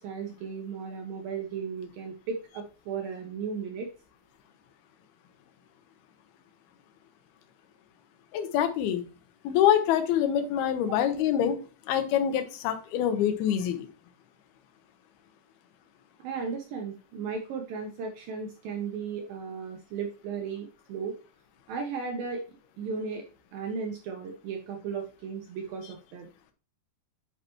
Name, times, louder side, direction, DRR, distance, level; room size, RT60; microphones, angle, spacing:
voice 1, 0.0-3.9 16.2-21.2 21.7-23.2 23.5-26.3, right 5 dB, 75° right, 3 dB, 2.2 m, -35 dB
voice 2, 8.3-9.0 9.4-13.9, left 10 dB, 75° left, 7 dB, 2.6 m, -25 dB
9.5 x 5.8 x 3.0 m, 0.35 s
omnidirectional pair, 5.2 m